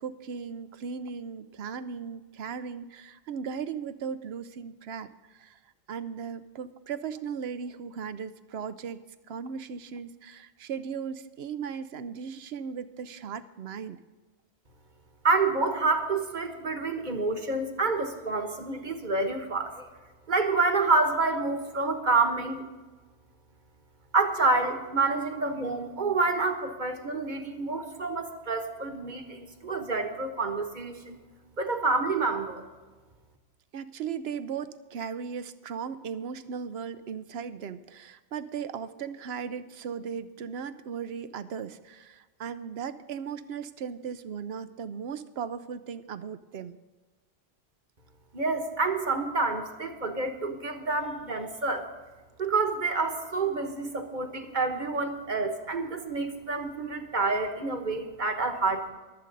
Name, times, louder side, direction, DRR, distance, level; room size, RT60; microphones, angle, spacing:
voice 1, 0.0-5.6 5.9-9.0 9.3-14.0 33.7-46.8, right 6 dB, 75° right, 13 dB, 0.9 m, -37 dB
voice 2, 15.2-19.9 20.3-22.7 24.1-31.2 31.6-32.7 48.3-51.9 52.4-58.9, right 3 dB, 45° right, 6 dB, 1.3 m, -28 dB
23.0 x 7.9 x 3.9 m, 1.3 s
omnidirectional pair, 1.1 m